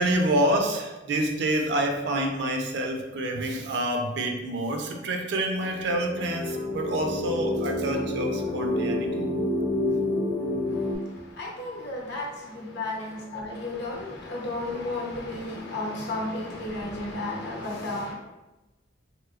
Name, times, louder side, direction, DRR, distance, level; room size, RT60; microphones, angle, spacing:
voice 1, 0.0-9.3 9.9-10.0, right 1 dB, 65° right, 3 dB, 0.4 m, -27 dB
sound 1, 5.6-10.9, left 1 dB, 15° left, 0.4 m, -28 dB
voice 2, 10.7-18.1, left 2 dB, 60° left, -1 dB, 0.7 m, -33 dB
3.0 x 2.9 x 2.4 m, 1.1 s
head